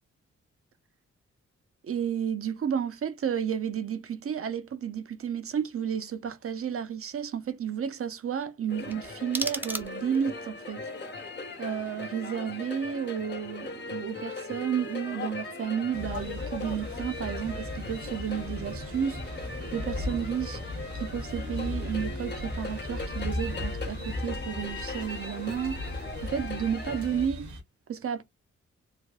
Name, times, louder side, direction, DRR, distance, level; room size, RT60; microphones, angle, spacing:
voice 1, 1.8-10.8 11.6-19.2 19.7-20.6 20.9-25.8 26.2-27.5 27.9-28.2, right 8 dB, 50° right, 0.6 m, -32 dB
sound 1, 8.7-27.3, left 3 dB, 40° left, 1.0 m, -39 dB
sound 2, 8.9-10.3, right 1 dB, 5° right, 0.6 m, -35 dB
sound 3, 15.9-27.6, left 1 dB, 75° right, 1.4 m, -37 dB
3.4 x 2.1 x 2.5 m
cardioid pair, 55°, 29 cm